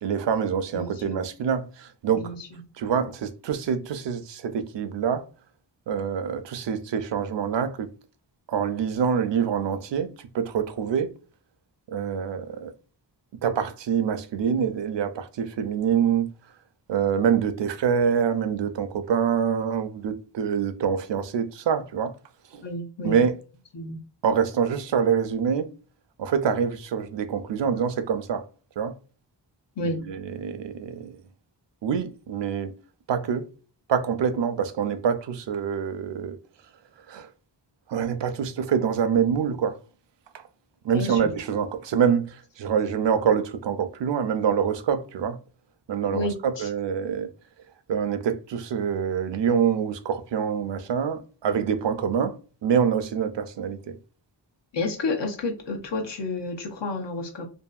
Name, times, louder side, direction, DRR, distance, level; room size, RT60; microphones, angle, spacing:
voice 1, 0.0-2.3 2.8-5.3 5.9-7.9 8.5-11.1 11.9-12.7 13.4-16.3 16.9-22.1 22.5-22.6 23.0-23.4 24.2-25.7 26.2-28.4 28.8-29.0 29.8-31.2 31.8-32.7 33.1-33.5 33.9-36.4 37.1-37.3 37.9-39.8 40.3-40.4 40.8-45.4 45.9-47.3 47.9-54.0, right 7 dB, 70° right, 0.5 m, -25 dB
voice 2, 0.7-1.2 2.1-2.6 22.6-23.2 23.7-24.0 29.8-30.0 40.9-41.3 46.1-46.7 54.7-57.5, left 2 dB, 70° left, 0.9 m, -30 dB
2.7 x 2.5 x 2.3 m
wide cardioid pair, 65°, 44 cm